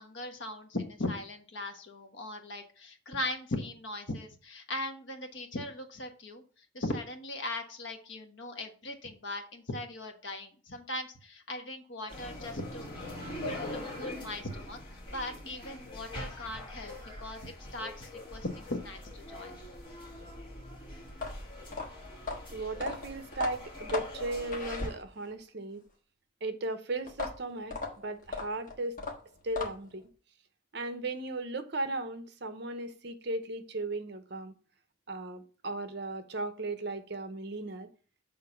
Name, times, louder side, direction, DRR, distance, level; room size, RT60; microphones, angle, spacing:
voice 1, 0.0-6.4 6.7-12.9 13.4-19.6, left 1 dB, 65° left, 1.2 m, -39 dB
sound 1, 12.1-24.9, left 1 dB, 25° left, 2.0 m, -43 dB
sound 2, 21.1-25.4 27.1-30.0, left 3 dB, 40° left, 1.4 m, -38 dB
voice 2, 22.5-25.9 26.4-29.0 29.4-30.1 30.7-34.5 35.1-37.9, right 2 dB, 55° right, 0.7 m, -36 dB
6.7 x 3.8 x 5.8 m
head